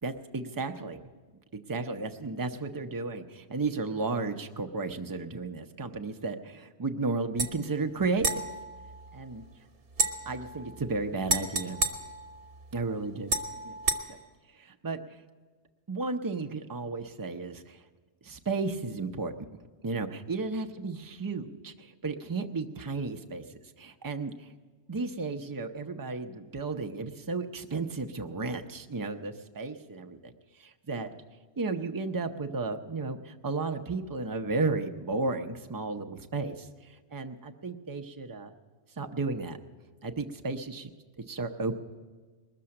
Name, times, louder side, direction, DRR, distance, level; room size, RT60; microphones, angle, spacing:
voice 1, 0.0-1.1 1.5-8.4 9.1-9.4 10.3-11.8 12.7-13.4 13.6-13.7 14.1-14.2 14.5-15.2 15.9-17.8 18.2-19.3 19.8-24.5 24.9-30.3 30.6-31.2 31.6-38.5 39.0-39.6 40.0-40.9 41.3-41.8, right 3 dB, 25° right, 6 dB, 0.5 m, -33 dB
sound 1, 7.4-7.5 8.2-9.5 9.9-12.8 13.3-14.0, right 3 dB, 55° right, 1.1 m, -32 dB
20.5 x 6.8 x 8.6 m, 1.4 s
omnidirectional pair, 1.2 m